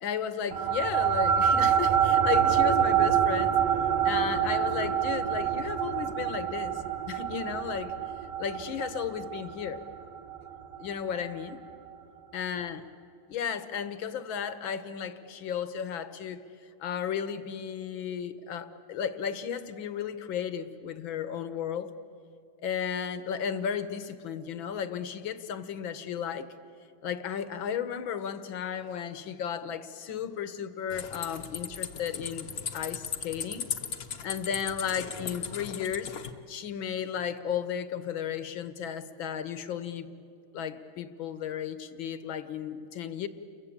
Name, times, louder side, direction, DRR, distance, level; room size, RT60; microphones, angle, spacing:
voice 1, 0.0-3.6 4.0-7.9 8.4-9.8 10.8-11.6 12.3-12.8 13.3-16.4 16.8-21.9 22.6-26.5 27.0-32.5 32.7-33.7 34.2-36.2 36.5-40.1 40.5-43.3, left 8 dB, 65° left, 11 dB, 1.9 m, -34 dB
sound 1, 0.5-11.3, right 8 dB, 80° right, 2.2 m, -26 dB
sound 2, 30.9-36.3, left 7 dB, 50° left, 1.4 m, -37 dB
30.0 x 22.5 x 8.7 m, 2.4 s
omnidirectional pair, 2.4 m